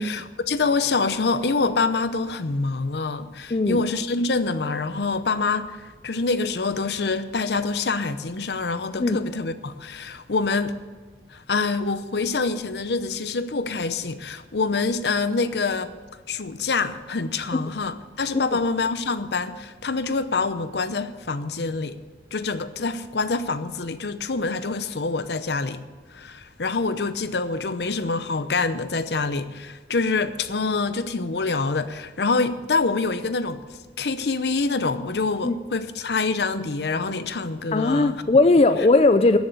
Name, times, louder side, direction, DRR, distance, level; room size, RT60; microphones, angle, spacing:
voice 1, 0.0-10.7 11.3-16.0 16.3-22.0 22.3-25.8 26.1-33.6 34.0-38.2, left 4 dB, 75° left, 0.7 m, -26 dB
voice 2, 37.7-39.4, left 2 dB, 35° left, 0.4 m, -18 dB
13.5 x 7.2 x 7.9 m
head